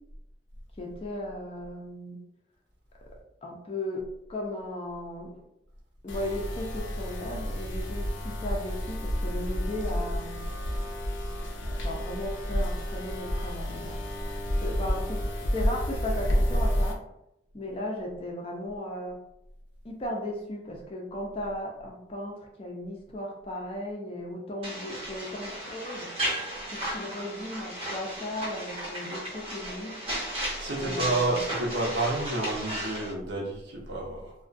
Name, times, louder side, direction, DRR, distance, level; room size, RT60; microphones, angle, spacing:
voice 1, 0.8-2.2 3.4-5.3 6.0-10.5 11.8-14.0 14.6-15.2 15.5-17.0 17.5-19.2 19.8-26.1 26.7-30.0 30.7-31.4, left 1 dB, 30° left, -1 dB, 0.4 m, -36 dB
sound 1, 6.1-16.9, equal, 90° left, 0.5 m, -30 dB
sound 2, 24.6-33.1, right 1 dB, 30° right, 0.6 m, -35 dB
voice 2, 30.6-34.3, right 2 dB, 70° right, -3 dB, 0.7 m, -30 dB
2.3 x 2.2 x 2.5 m, 0.83 s
head